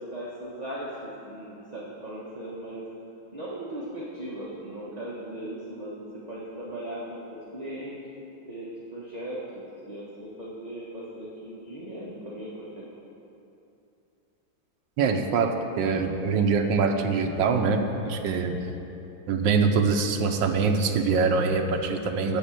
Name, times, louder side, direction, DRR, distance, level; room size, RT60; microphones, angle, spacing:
voice 1, 0.0-2.8 3.3-7.9 8.5-12.5 12.8-13.0, right 1 dB, 25° right, -6 dB, 1.0 m, -38 dB
voice 2, 15.0-18.7 19.3-22.4, right 4 dB, 75° right, 5 dB, 1.4 m, -24 dB
13.0 x 4.4 x 7.6 m, 2.8 s
omnidirectional pair, 2.1 m